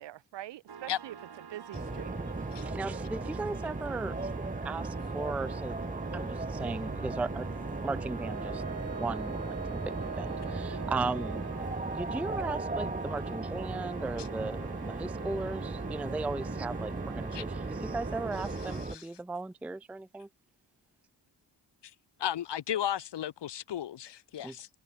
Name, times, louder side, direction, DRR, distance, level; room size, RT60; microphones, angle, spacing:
voice 1, 0.0-2.6, right 13 dB, 85° right, 0.6 m, -45 dB
sound 1, 0.7-18.8, right 7 dB, 65° right, 2.8 m, -46 dB
sound 2, 1.7-19.0, right 2 dB, 20° right, 1.8 m, -36 dB
voice 2, 2.6-4.3 4.6-5.8 6.1-7.5 7.8-8.6 9.0-11.4 11.8-20.3 24.4-24.6, right 3 dB, 5° right, 0.4 m, -37 dB
Wind instrument woodwind instrument, 8.2-11.8, right 5 dB, 35° right, 1.2 m, -43 dB
voice 3, 22.2-24.7, left 11 dB, 75° left, 0.9 m, -34 dB
cardioid pair, 80°, 42 cm